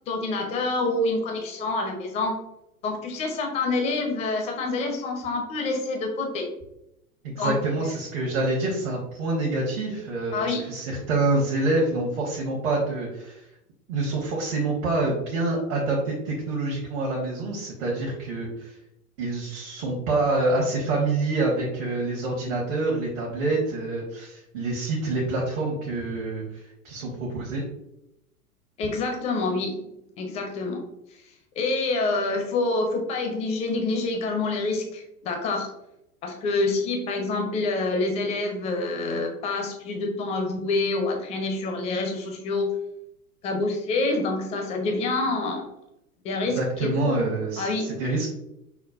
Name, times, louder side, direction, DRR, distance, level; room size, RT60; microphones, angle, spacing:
voice 1, 0.1-2.3 2.8-6.5 7.4-7.6 10.3-10.7 28.8-29.8 30.2-30.9 31.6-35.7 36.2-42.8 43.4-45.7 46.2-47.2 47.6-47.8, left 3 dB, 15° left, 3 dB, 0.4 m, -27 dB
voice 2, 7.2-13.5 13.9-18.8 19.2-27.6 46.5-48.3, right 2 dB, 55° right, -3 dB, 1.1 m, -27 dB
5.7 x 2.2 x 2.3 m, 0.84 s
figure-of-eight pair, 95°, 45 cm